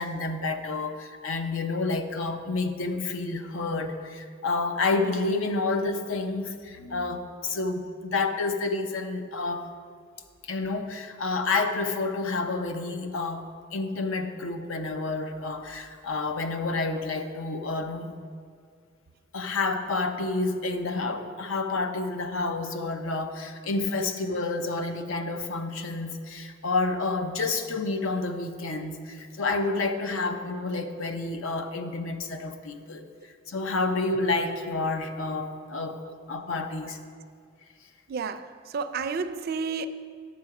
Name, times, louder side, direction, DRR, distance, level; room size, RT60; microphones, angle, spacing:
voice 1, 0.0-9.7 10.4-13.5 13.7-18.2 19.3-33.1 33.5-36.0 36.3-37.0, left 3 dB, 80° left, 0.7 m, -29 dB
voice 2, 38.1-38.5 38.7-39.9, right 5 dB, 50° right, 0.4 m, -30 dB
9.3 x 7.4 x 4.8 m
head